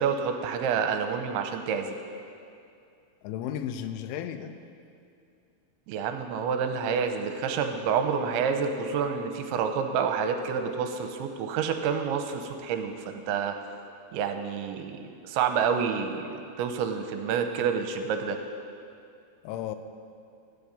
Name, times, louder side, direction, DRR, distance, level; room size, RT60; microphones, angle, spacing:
voice 1, 0.0-2.0 5.9-13.5 14.1-15.0 15.2-18.4, right 6 dB, 80° right, 6 dB, 3.0 m, -28 dB
voice 2, 3.2-4.6 19.4-19.8, left 10 dB, 85° left, 9 dB, 3.1 m, -34 dB
17.0 x 12.5 x 5.3 m, 2.4 s
omnidirectional pair, 5.5 m